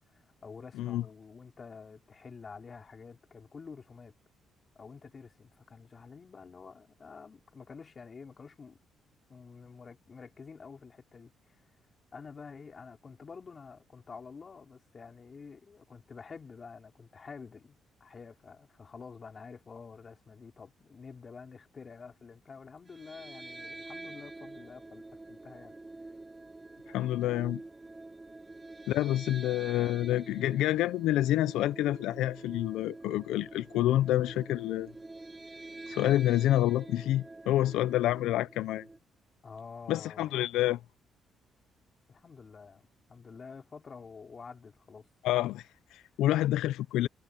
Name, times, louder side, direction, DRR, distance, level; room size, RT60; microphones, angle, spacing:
voice 1, 0.0-4.1 4.8-8.8 9.3-11.6 12.1-25.8 39.4-40.3 42.1-45.1, left 5 dB, 40° left, 3.5 m, -49 dB
sound 1, 22.9-39.0, right 2 dB, 20° right, 2.3 m, -47 dB
voice 2, 26.9-27.6 28.9-34.9 35.9-38.8 39.9-40.8 45.2-47.1, left 14 dB, 90° left, 0.5 m, -28 dB
cardioid pair, 90°, 0 cm